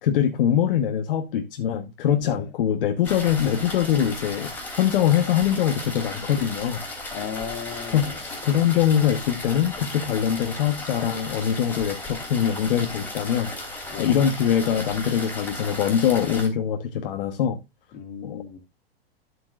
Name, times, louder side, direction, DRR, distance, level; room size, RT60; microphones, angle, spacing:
voice 1, 0.0-4.5 4.8-6.8 7.9-13.5 14.0-17.6 18.2-18.4, left 9 dB, 60° left, 1.3 m, -23 dB
sound 1, 3.0-16.5, left 2 dB, 5° left, 2.7 m, -35 dB
voice 2, 7.1-8.2 13.9-14.2 17.9-18.6, left 7 dB, 35° left, 2.3 m, -35 dB
12.5 x 7.9 x 2.5 m
supercardioid pair, 155°, 31 cm